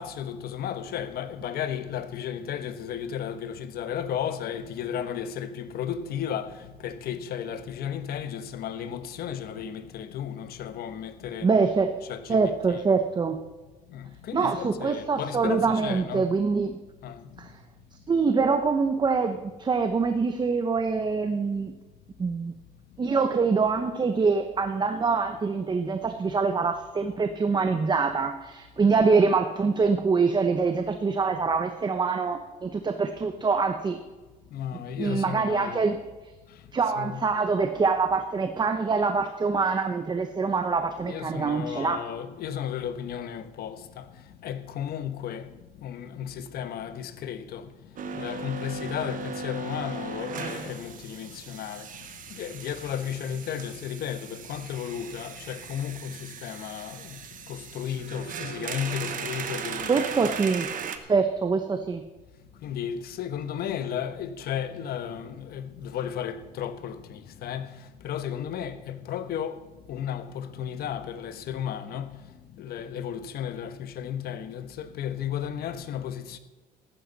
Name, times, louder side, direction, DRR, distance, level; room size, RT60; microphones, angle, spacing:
voice 1, 0.0-11.5 12.1-12.8 13.9-16.3 17.0-17.2 34.5-35.8 37.0-37.3 41.0-44.1 44.4-45.5 45.8-47.7 48.1-51.9 52.3-57.2 57.5-60.3 62.6-69.6 69.9-72.2 72.6-76.4, left 9 dB, 65° left, 1.1 m, -34 dB
voice 2, 11.4-11.9 12.3-13.4 14.3-16.8 17.4-17.5 18.1-21.7 22.2-22.5 23.0-34.0 35.0-36.0 36.7-42.0 59.9-60.7 61.1-62.0, right 4 dB, 25° right, 0.9 m, -25 dB
sound 1, 48.0-61.0, right 6 dB, 55° right, 1.2 m, -37 dB
14.5 x 12.5 x 4.1 m
cardioid pair, 110°, 17 cm